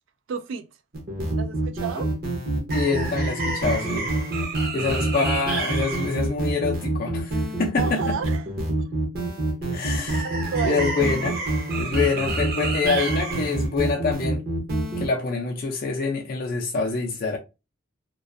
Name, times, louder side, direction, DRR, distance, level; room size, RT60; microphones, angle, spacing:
voice 1, 0.3-0.7 1.4-2.1 7.7-8.5 9.6-9.8 10.2-10.9, right 6 dB, 70° right, 0.3 m, -31 dB
sound 1, 0.9-15.1, right 2 dB, 50° right, 0.8 m, -26 dB
voice 2, 2.7-4.1 4.7-8.0 9.7-10.3 10.6-11.4 11.8-14.4 15.0-17.4, left 4 dB, 45° left, 0.4 m, -26 dB
2.4 x 2.2 x 2.4 m
head